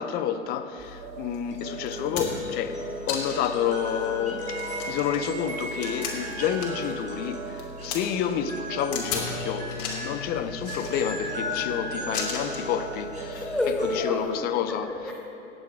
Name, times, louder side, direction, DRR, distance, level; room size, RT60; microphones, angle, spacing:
voice 1, 0.0-2.8 3.1-13.4 14.0-14.9, left 9 dB, 25° left, 0.6 m, -29 dB
sound 1, 0.8-14.0, equal, 20° right, 3.4 m, -36 dB
sound 2, 1.0-2.1 2.8-3.0 3.3-3.9 4.7-5.0 5.3-5.9 6.6-7.0 7.3-7.9 8.6-9.0 9.3-9.9 10.8-11.1 11.3-12.1 12.7-13.7, right 11 dB, 40° right, 0.6 m, -43 dB
sound 3, 1.3-1.4 1.9-2.5 3.1-3.6 4.0-4.1 4.5-6.9 7.2-8.0 8.9-9.3 9.7-10.1 10.6-11.3 12.1-12.7 13.8-13.9, left 6 dB, 45° left, 3.0 m, -34 dB
voice 2, 13.3-15.1, left 2 dB, ahead, 0.9 m, -29 dB
17.5 x 8.7 x 4.8 m
hypercardioid pair, 115°, 37 cm